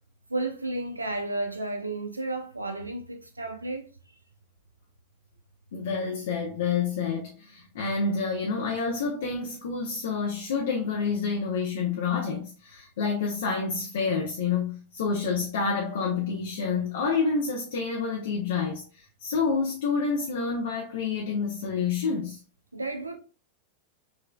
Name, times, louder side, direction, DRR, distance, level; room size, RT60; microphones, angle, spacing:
voice 1, 0.3-3.9 22.7-23.2, right 2 dB, 80° right, 0.5 m, -32 dB
voice 2, 5.7-22.4, left 5 dB, 60° left, 0.7 m, -28 dB
5.2 x 3.4 x 2.2 m
figure-of-eight pair, 90°, 0 cm